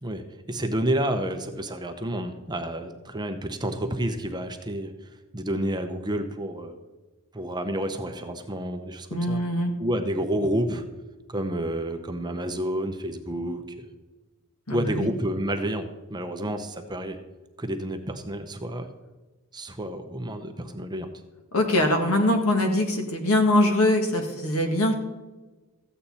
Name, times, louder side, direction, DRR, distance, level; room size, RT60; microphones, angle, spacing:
voice 1, 0.0-4.9 5.3-6.7 7.3-9.4 9.8-10.8 11.3-13.8 14.7-17.2 17.6-18.9 19.5-21.1, right 1 dB, 20° right, 6 dB, 0.8 m, -29 dB
voice 2, 9.1-9.7 14.7-15.1 21.5-24.9, left 1 dB, 70° left, 4 dB, 1.8 m, -22 dB
14.0 x 8.6 x 4.2 m, 1.2 s
head